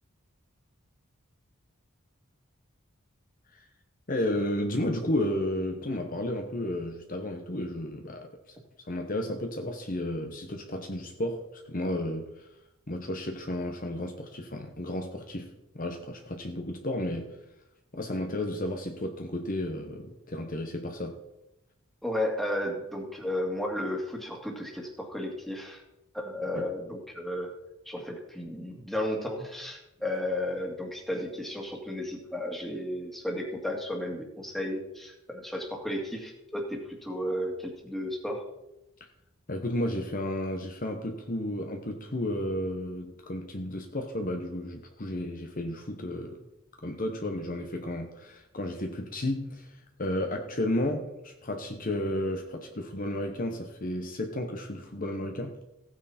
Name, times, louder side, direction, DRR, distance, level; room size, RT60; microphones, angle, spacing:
voice 1, 4.1-8.6 8.8-12.5 12.9-17.3 17.9-21.2 26.5-26.6 39.5-46.4 46.8-55.6, left 1 dB, 40° left, 4 dB, 1.1 m, -33 dB
voice 2, 22.0-25.8 26.1-27.5 27.9-38.4, left 1 dB, ahead, 0 dB, 2.2 m, -33 dB
16.0 x 9.2 x 4.3 m, 0.91 s
head